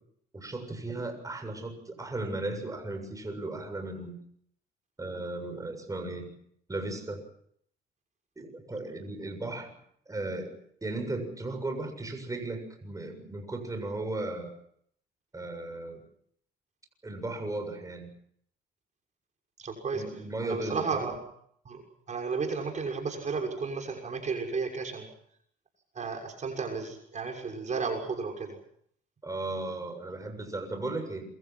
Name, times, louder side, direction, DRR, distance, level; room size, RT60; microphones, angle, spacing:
voice 1, 0.3-4.2 5.0-6.3 6.7-7.2 8.4-9.7 10.1-14.5 15.3-16.0 17.0-18.1 19.9-21.1 29.2-31.3, right 2 dB, 20° right, 5 dB, 7.3 m, -36 dB
voice 2, 19.6-20.0 20.4-21.2 21.6-21.8 22.1-25.1 25.9-28.6, right 4 dB, 40° right, 2 dB, 6.5 m, -33 dB
28.0 x 23.5 x 6.1 m, 0.67 s
cardioid pair, 95°, 18 cm